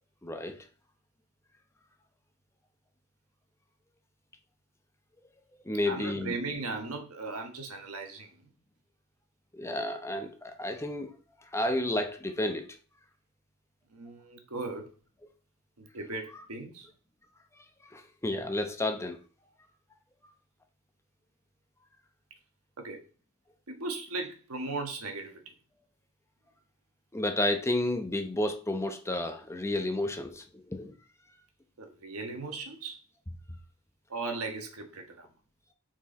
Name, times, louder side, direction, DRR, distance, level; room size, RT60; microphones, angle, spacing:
voice 1, 0.2-0.6 5.7-6.3 9.5-11.1 11.5-12.7 17.9-19.2 27.1-30.4 30.7-30.9, left 1 dB, 15° left, 0.8 m, -31 dB
voice 2, 5.9-8.4 13.9-14.9 15.8-16.9 22.8-23.0 23.7-25.4 31.8-33.0 34.1-35.3, right 3 dB, 85° right, 1.4 m, -37 dB
6.0 x 4.7 x 4.2 m
head